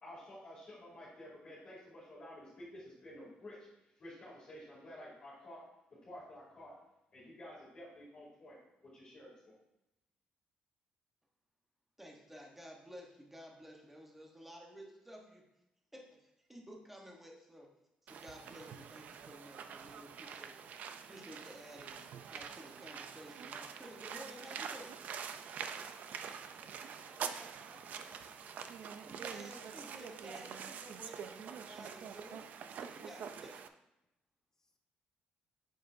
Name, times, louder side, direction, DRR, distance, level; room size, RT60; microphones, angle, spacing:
voice 1, 0.0-3.6 3.8-5.6 6.0-6.7 7.1-9.6, left 1 dB, 30° left, -8 dB, 2.7 m, -51 dB
voice 2, 12.0-15.4 15.9-17.7 18.0-20.6 21.1-22.0 22.3-25.0 29.0-32.4 32.8-33.6, equal, 5° right, -1 dB, 1.0 m, -53 dB
sound 1, 18.1-33.7, right 7 dB, 55° right, 0.4 m, -46 dB
voice 3, 26.6-28.5 34.6-34.8, left 2 dB, 15° left, 3 dB, 0.8 m, -64 dB
7.8 x 7.6 x 2.6 m, 0.91 s
cardioid pair, 170°, 3 cm